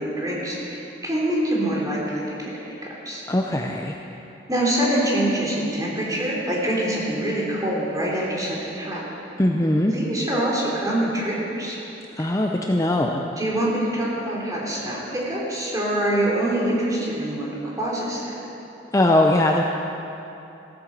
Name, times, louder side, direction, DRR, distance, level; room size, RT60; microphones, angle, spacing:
voice 1, 0.0-3.2 4.5-9.0 9.7-11.8 12.2-12.3 13.4-18.4, right 1 dB, 20° right, -5 dB, 3.3 m, -25 dB
voice 2, 3.3-3.9 9.4-9.9 12.2-13.3 18.9-19.6, left 1 dB, 20° left, 1 dB, 0.6 m, -20 dB
15.5 x 9.0 x 7.4 m, 2.9 s
head